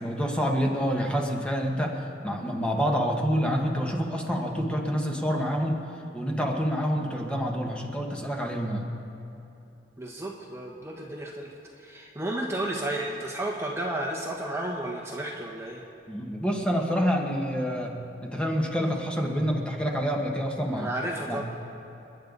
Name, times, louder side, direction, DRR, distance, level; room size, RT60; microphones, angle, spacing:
voice 1, 0.0-5.8 6.1-8.9 16.1-20.9 21.3-21.4, equal, 5° left, 0 dB, 1.6 m, -27 dB
voice 2, 10.0-11.5 11.8-15.8 20.7-21.4, right 1 dB, 15° right, -1 dB, 1.3 m, -32 dB
29.5 x 10.5 x 4.0 m, 2.9 s
head